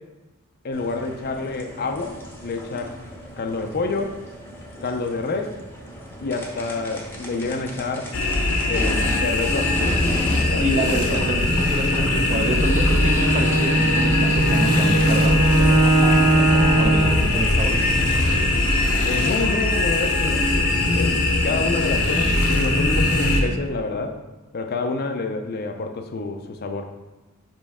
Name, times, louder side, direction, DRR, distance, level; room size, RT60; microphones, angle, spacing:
voice 1, 0.6-2.2 2.4-2.9 3.4-4.2 4.8-5.5 6.2-8.1 8.7-10.0 10.5-11.3 16.9-17.1 19.0-20.5 20.9-24.2 24.5-26.9, left 3 dB, 45° left, 5 dB, 0.5 m, -28 dB
sound 1, 0.7-18.2, equal, 10° left, 0.8 m, -36 dB
sound 2, 8.1-23.4, left 2 dB, 80° left, 1.0 m, -21 dB
voice 2, 10.6-15.4 16.8-17.8, right 1 dB, 30° right, 4 dB, 0.6 m, -27 dB
Bowed string instrument, 12.5-17.3, right 2 dB, 75° right, 1.0 m, -20 dB
5.2 x 5.2 x 3.5 m, 1.1 s
head